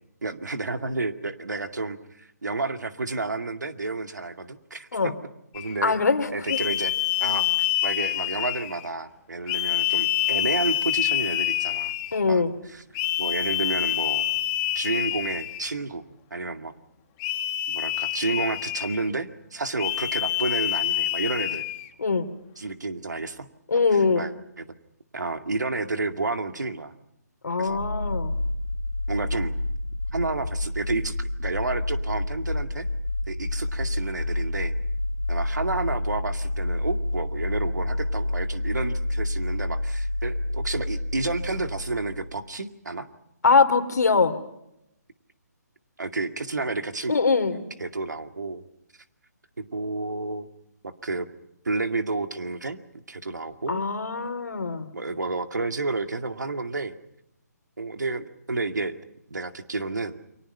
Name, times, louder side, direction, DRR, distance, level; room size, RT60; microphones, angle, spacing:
voice 1, 0.2-5.1 5.5-5.9 6.3-6.9 7.2-7.5 7.8-11.9 12.2-12.4 12.7-12.8 13.2-14.3 14.7-16.0 16.3-16.7 17.7-21.7 22.6-23.5 23.7-24.3 24.6-24.7 25.1-26.9 27.6-27.8 29.1-29.5 30.1-32.9 33.3-34.7 35.3-43.1 46.0-47.1 47.5-48.6 49.6-50.5 50.8-51.3 51.6-52.8 53.1-53.9 54.9-57.0 57.8-58.9 59.3-60.2, right 3 dB, 80° right, 8 dB, 2.2 m, -30 dB
sound 1, 5.5-5.8 6.5-8.9 9.5-12.2 12.9-15.7 17.2-19.1 19.8-21.9, left 14 dB, 20° left, 1.4 m, -27 dB
voice 2, 5.8-6.6 12.1-12.5 22.0-22.3 23.7-24.3 27.4-28.4 43.4-44.3 47.1-47.6 53.7-54.9, left 4 dB, 70° left, 10 dB, 2.8 m, -22 dB
sound 2, 27.7-42.4, left 1 dB, 90° left, 2.9 m, -29 dB
29.5 x 24.0 x 5.6 m, 0.81 s
figure-of-eight pair, 150°, 9 cm